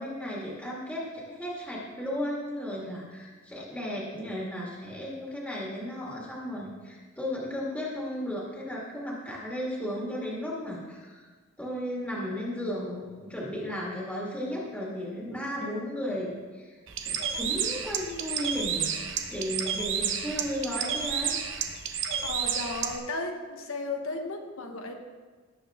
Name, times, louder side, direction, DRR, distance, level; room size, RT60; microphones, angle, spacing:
voice 1, 0.0-11.3 11.6-16.8 17.1-21.4 22.0-22.3, equal, 5° left, -5 dB, 2.0 m, -35 dB
Bird, 16.9-23.0, right 7 dB, 60° right, 0.9 m, -31 dB
voice 2, 22.2-24.9, left 2 dB, 75° left, 4 dB, 1.3 m, -35 dB
17.5 x 7.4 x 3.6 m, 1.4 s
head